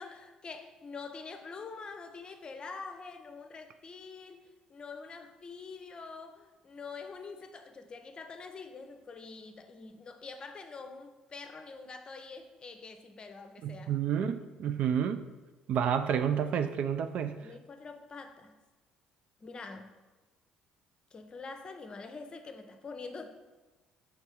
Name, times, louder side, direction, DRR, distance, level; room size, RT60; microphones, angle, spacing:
voice 1, 0.0-4.4 4.7-13.9 17.4-18.5 19.4-19.9 21.1-23.3, left 4 dB, 35° left, 7 dB, 0.7 m, -45 dB
voice 2, 13.6-15.2 15.7-17.4, right 8 dB, 55° right, 9 dB, 0.4 m, -30 dB
5.4 x 3.5 x 5.1 m, 1.2 s
hypercardioid pair, 55°, 3 cm